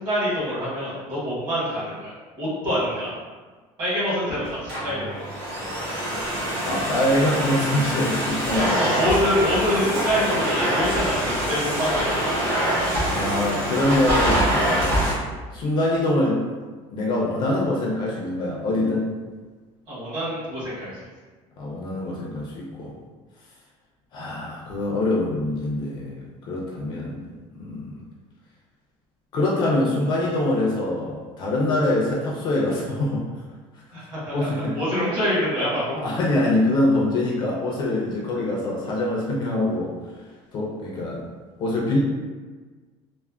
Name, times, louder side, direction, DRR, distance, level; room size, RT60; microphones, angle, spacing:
voice 1, 0.0-3.1 3.8-5.3 8.7-12.1 19.9-21.0 33.9-36.0, equal, 35° right, -9 dB, 1.3 m, -26 dB
Domestic sounds home sounds, 4.4-15.1, equal, 90° right, 1.1 m, -24 dB
voice 2, 6.7-9.0 12.8-15.1 15.5-16.4 16.9-19.1 21.6-22.9 24.1-27.9 29.3-33.3 34.3-34.8 36.0-39.9 40.5-41.2 41.6-42.0, left 1 dB, 40° left, -3 dB, 0.4 m, -24 dB
3.3 x 2.0 x 2.3 m, 1.4 s
cardioid pair, 180°, 12 cm